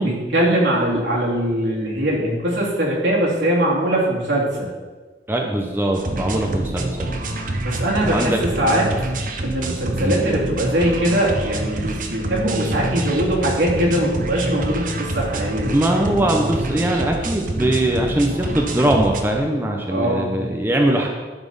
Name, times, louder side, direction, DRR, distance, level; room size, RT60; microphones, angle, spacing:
voice 1, 0.0-4.7 7.6-8.9 9.4-15.7 19.9-20.3, right 1 dB, 85° right, -4 dB, 2.5 m, -21 dB
voice 2, 5.3-7.1 8.0-8.4 10.0-10.2 15.7-21.1, right 1 dB, 10° right, 1 dB, 0.7 m, -21 dB
sound 1, 5.9-19.2, right 1 dB, 45° right, 0.8 m, -27 dB
11.5 x 4.2 x 5.3 m, 1.3 s
head